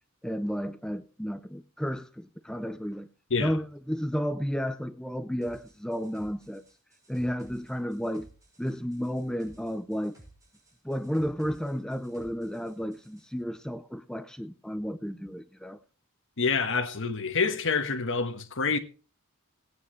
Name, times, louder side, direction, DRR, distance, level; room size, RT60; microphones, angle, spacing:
voice 1, 0.2-3.1 3.4-6.6 7.1-8.3 8.6-10.2 10.8-15.8, equal, 5° left, 0.5 m, -32 dB
sound 1, 5.4-13.3, right 1 dB, 15° right, 5.6 m, -56 dB
voice 2, 16.4-18.8, left 4 dB, 60° left, 1.3 m, -27 dB
18.0 x 9.6 x 3.2 m
head